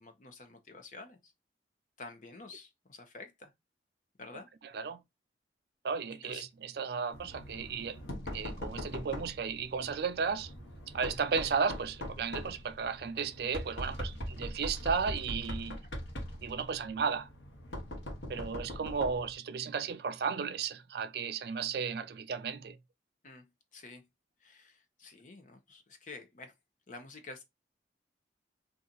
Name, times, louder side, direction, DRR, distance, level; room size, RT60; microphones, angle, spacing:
voice 1, 0.0-1.3 2.0-3.5 4.2-4.5 6.2-6.4 23.2-23.5 23.7-24.0 24.4-26.5 26.9-27.4, left 3 dB, 45° left, 0.7 m, -49 dB
voice 2, 4.6-5.0 5.8-8.0 8.3-10.5 10.9-15.8 16.4-17.3 18.3-22.8, right 5 dB, 55° right, 0.4 m, -34 dB
Knock, 7.1-19.3, equal, 80° left, 1.0 m, -42 dB
2.8 x 2.4 x 3.8 m
head